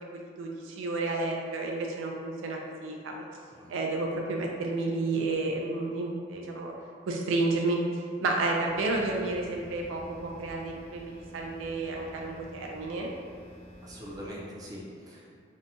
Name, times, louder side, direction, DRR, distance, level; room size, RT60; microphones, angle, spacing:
voice 1, 0.0-3.3 3.7-6.7 7.1-7.8 8.2-13.1, right 2 dB, 90° right, 0 dB, 0.3 m, -31 dB
sound 1, 8.6-14.3, equal, 75° left, 0.8 m, -49 dB
voice 2, 13.8-15.4, equal, 20° right, -5 dB, 0.4 m, -43 dB
2.6 x 2.1 x 2.7 m, 2.1 s
head